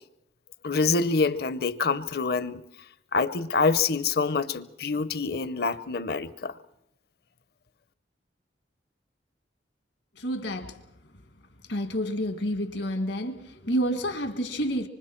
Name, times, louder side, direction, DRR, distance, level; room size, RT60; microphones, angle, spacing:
voice 1, 0.6-2.6 3.1-6.6, left 4 dB, 55° left, 0.7 m, -26 dB
voice 2, 10.2-10.8 11.7-14.9, equal, 75° left, 1.8 m, -29 dB
25.5 x 25.0 x 4.5 m
head